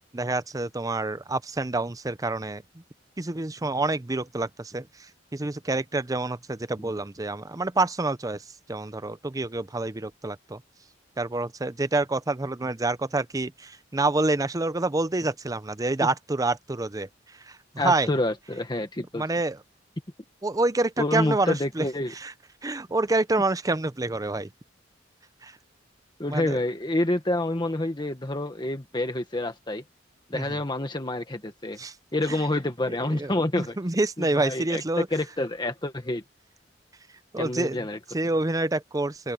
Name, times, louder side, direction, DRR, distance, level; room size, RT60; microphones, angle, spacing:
voice 1, 0.1-2.8 3.2-10.6 11.2-18.1 19.1-19.6 20.4-22.3 22.6-24.5 25.4-25.6 26.3-26.6 30.3-30.6 31.8-31.9 32.3-32.4 33.1-35.1 37.3-37.8 38.1-39.3, right 2 dB, 20° right, 0.6 m, -27 dB
voice 2, 17.8-19.2 21.0-22.1 26.2-29.8 30.3-31.8 32.1-33.8 34.2-36.2 37.4-38.0, left 1 dB, 25° left, 1.4 m, -28 dB
open air
head